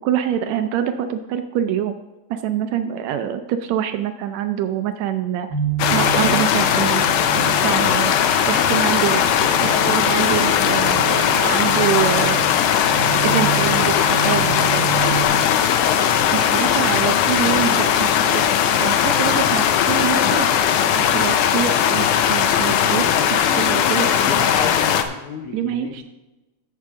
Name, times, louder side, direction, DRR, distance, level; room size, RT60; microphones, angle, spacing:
voice 1, 0.0-2.0 2.3-5.5 5.9-7.0 7.6-8.2 8.4-9.2 9.6-12.4 13.2-14.9 16.3-18.4 18.8-20.5 21.0-24.5 25.5-26.0, right 10 dB, 80° right, 8 dB, 1.7 m, -25 dB
sound 1, 5.5-15.3, right 9 dB, 55° right, 4.0 m, -29 dB
sound 2, 5.8-25.0, left 9 dB, 85° left, 2.2 m, -18 dB
voice 2, 23.0-26.0, left 6 dB, 70° left, 1 dB, 1.4 m, -31 dB
14.0 x 6.6 x 3.7 m, 1.1 s
omnidirectional pair, 3.4 m